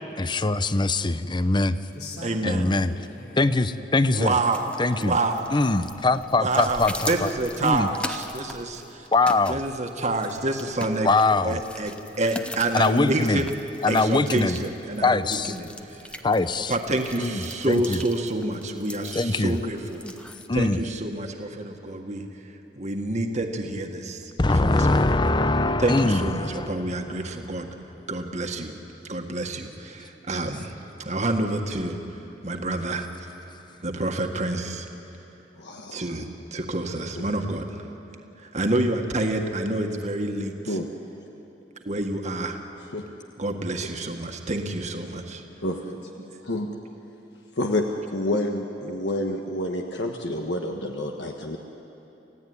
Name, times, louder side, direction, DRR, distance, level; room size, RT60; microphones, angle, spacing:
voice 1, 0.2-1.8 2.4-2.9 3.4-4.3 4.8-5.2 5.5-7.3 7.6-7.9 9.1-9.6 11.0-11.6 12.7-13.4 13.8-14.6 15.0-15.6 16.2-16.7 17.2-18.0 19.1-19.6 20.5-20.8 24.4-27.1, left 2 dB, 25° left, 13 dB, 0.7 m, -22 dB
sound 1, 1.9-3.6 4.0-5.6 6.2-6.3 6.8-8.1 8.8-8.9, left 1 dB, 65° left, 3.4 m, -44 dB
voice 2, 2.2-2.7 4.1-5.5 6.4-9.1 9.5-11.1 11.4-13.5 13.9-16.2 16.7-20.0 20.5-25.0 25.8-27.7 28.1-28.8 29.1-30.7 31.0-32.0 32.4-33.3 33.8-34.9 35.9-37.9 38.4-40.8 41.9-42.6 43.4-45.4 46.2-46.3, right 2 dB, 45° right, 4 dB, 1.8 m, -28 dB
sound 2, 4.4-20.5, left 1 dB, 5° left, 1.0 m, -41 dB
voice 3, 35.6-36.0 40.7-40.9 42.9-43.0 45.6-46.1 46.4-46.7 47.6-47.8 48.1-51.6, left 1 dB, 80° left, 2 dB, 1.4 m, -28 dB
29.0 x 15.5 x 9.7 m, 3.0 s
head